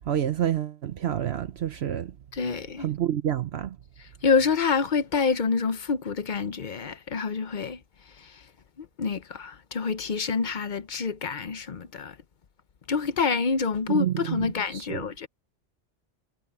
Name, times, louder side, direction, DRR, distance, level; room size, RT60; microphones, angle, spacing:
voice 1, 0.0-2.1 2.8-3.8 13.9-14.5 14.7-15.0, right 10 dB, 60° right, 0.9 m, -28 dB
voice 2, 2.3-2.9 4.2-7.8 8.2-8.3 8.8-12.2 12.9-15.3, left 5 dB, 45° left, 0.8 m, -27 dB
omnidirectional pair, 1.3 m